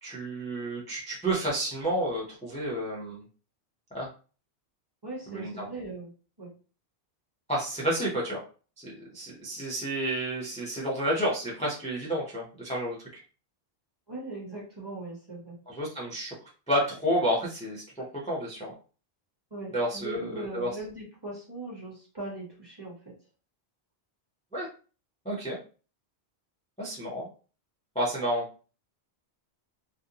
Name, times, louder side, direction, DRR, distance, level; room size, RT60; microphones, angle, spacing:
voice 1, 0.0-3.2 3.9-4.1 5.3-5.7 7.5-8.4 8.8-13.2 15.7-16.3 16.7-17.8 18.2-18.7 19.7-20.7 24.5-24.7 25.2-25.6 26.8-27.3 27.9-28.4, right 1 dB, 10° left, -5 dB, 0.5 m, -30 dB
voice 2, 5.0-6.1 6.4-6.5 14.1-15.6 19.5-22.9, right 2 dB, 25° right, -3 dB, 0.8 m, -39 dB
2.5 x 2.1 x 2.8 m, 0.37 s
omnidirectional pair, 1.1 m